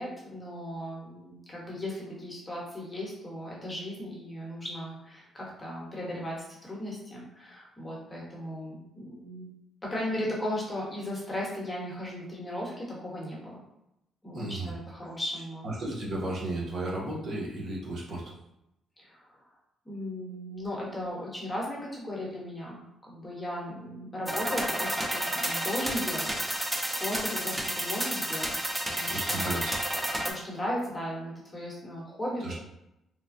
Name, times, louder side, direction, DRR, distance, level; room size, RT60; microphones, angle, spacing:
voice 1, 0.0-9.5 9.9-13.6 14.2-15.7 19.0-19.3 19.8-28.5 28.9-29.6 30.2-32.6, left 1 dB, 20° left, -4 dB, 1.1 m, -36 dB
voice 2, 14.3-14.7 15.6-18.2 29.1-29.7 32.4-32.6, right 1 dB, 55° right, -4 dB, 1.0 m, -34 dB
sound 1, 24.3-30.3, right 1 dB, 10° right, 0.5 m, -31 dB
3.2 x 2.2 x 2.6 m, 0.86 s
cardioid pair, 90°, 0 cm